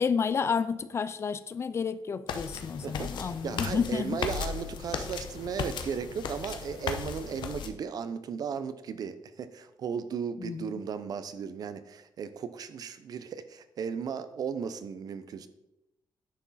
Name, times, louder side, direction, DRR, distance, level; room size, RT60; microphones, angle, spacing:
voice 1, 0.0-4.2 10.4-10.8, left 6 dB, 35° left, 0.4 m, -30 dB
sound 1, 2.3-7.7, left 7 dB, 85° left, 0.8 m, -36 dB
voice 2, 2.8-15.5, right 6 dB, 55° right, 0.6 m, -36 dB
9.7 x 6.1 x 4.1 m
wide cardioid pair, 160°, 8 cm